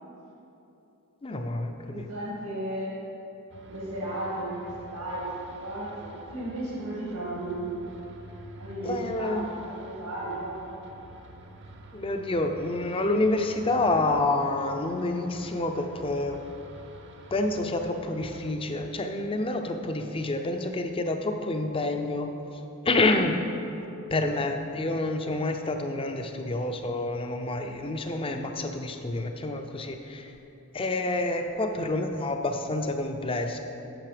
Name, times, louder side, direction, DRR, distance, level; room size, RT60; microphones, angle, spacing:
voice 1, 1.2-2.0 8.8-9.5 11.9-16.4 17.3-22.3 22.8-23.4 24.1-30.3 30.7-33.6, left 2 dB, 25° left, 6 dB, 0.5 m, -28 dB
voice 2, 1.8-2.9 3.7-7.8 8.6-10.7, right 1 dB, 85° right, -8 dB, 2.1 m, -34 dB
sound 1, 3.5-18.5, right 2 dB, 55° right, 0.8 m, -48 dB
9.0 x 6.5 x 5.0 m, 2.9 s
head